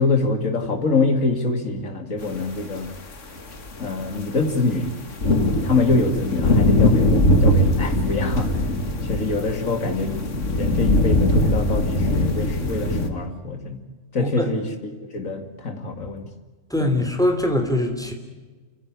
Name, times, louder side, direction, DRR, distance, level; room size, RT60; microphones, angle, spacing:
voice 1, 0.0-2.9 3.8-4.9 5.6-10.2 10.5-13.8 14.1-14.6 15.0-16.3 16.8-17.0, left 3 dB, 85° left, 6 dB, 3.0 m, -25 dB
sound 1, 2.7-2.8 3.4-13.1, left 1 dB, 70° left, 2.3 m, -21 dB
voice 2, 14.2-14.5 16.7-18.1, left 1 dB, 5° left, 5 dB, 3.3 m, -22 dB
28.0 x 15.0 x 9.8 m, 1.3 s
omnidirectional pair, 1.3 m